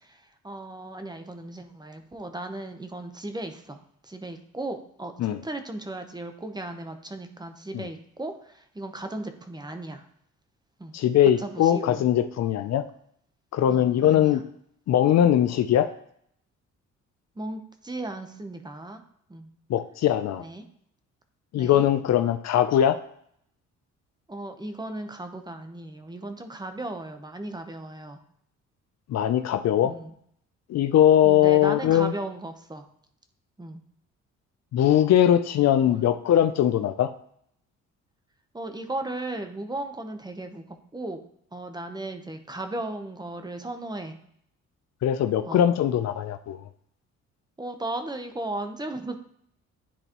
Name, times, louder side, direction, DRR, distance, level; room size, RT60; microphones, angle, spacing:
voice 1, 0.0-10.0 10.8-10.9 11.4-12.1 13.7-14.4 17.4-19.0 19.3-19.5 20.4-20.7 21.6-21.9 24.3-28.2 29.8-30.1 31.2-32.9 33.6-33.8 35.8-36.1 38.5-41.2 41.5-44.1 45.5-45.6 47.6-49.2, right 2 dB, 15° right, 6 dB, 0.8 m, -36 dB
voice 2, 10.9-12.8 13.5-14.4 14.9-15.9 19.7-20.4 21.5-23.0 29.1-29.9 30.7-32.1 34.7-37.1 45.0-46.6, left 10 dB, 60° left, 10 dB, 0.5 m, -21 dB
10.0 x 4.0 x 3.0 m, 0.68 s
cardioid pair, 90°, 30 cm